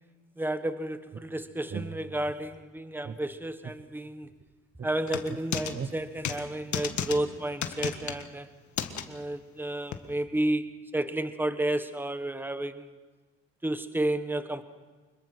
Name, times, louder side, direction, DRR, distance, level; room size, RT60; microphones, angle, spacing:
voice 1, 0.4-4.3 4.8-8.5 9.1-12.9 13.6-14.6, right 1 dB, 5° right, 10 dB, 1.3 m, -31 dB
sound 1, 1.1-2.6 3.0-4.5 4.8-7.3, right 6 dB, 35° right, 1.1 m, -42 dB
sound 2, 5.1-5.7 6.2-6.4 6.7-7.2 7.6-8.2 8.8-9.0 9.9-10.0, left 9 dB, 70° left, 1.7 m, -32 dB
25.5 x 22.0 x 6.1 m, 1.4 s
cardioid pair, 90°, 30 cm